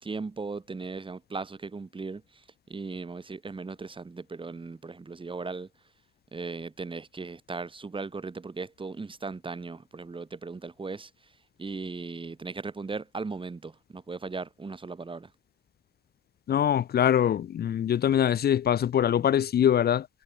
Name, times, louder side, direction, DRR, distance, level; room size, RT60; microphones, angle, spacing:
voice 1, 0.0-2.4 2.7-5.7 6.3-11.1 11.6-15.3, right 4 dB, 25° right, 3.2 m, -37 dB
voice 2, 16.5-20.1, left 9 dB, 50° left, 0.7 m, -23 dB
cardioid pair, 90°, 20 cm